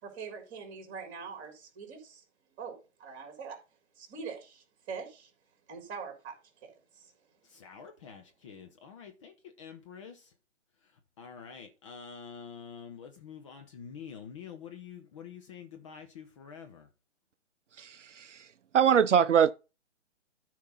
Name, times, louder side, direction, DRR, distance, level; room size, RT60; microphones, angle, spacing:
voice 1, 0.0-2.2 2.6-3.6 3.9-5.3 5.7-6.3 6.6-7.1, right 5 dB, 25° right, 3.4 m, -43 dB
voice 2, 7.4-10.3 10.8-16.9, left 7 dB, 25° left, 0.8 m, -47 dB
voice 3, 17.8-18.5 18.7-19.5, right 8 dB, 75° right, 0.5 m, -23 dB
13.0 x 4.7 x 4.0 m
figure-of-eight pair, 135°, 37 cm